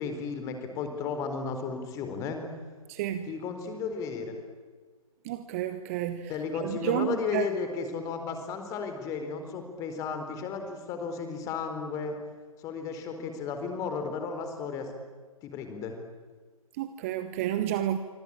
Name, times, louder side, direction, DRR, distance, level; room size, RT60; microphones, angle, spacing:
voice 1, 0.0-2.4 3.3-4.4 6.3-12.1 12.6-14.9 15.4-15.9, left 5 dB, 15° left, 6 dB, 4.0 m, -34 dB
voice 2, 2.9-3.3 5.2-6.3 6.6-7.5 16.8-18.0, right 12 dB, 25° right, 11 dB, 1.1 m, -30 dB
27.0 x 25.0 x 8.8 m, 1.5 s
figure-of-eight pair, 140°, 19 cm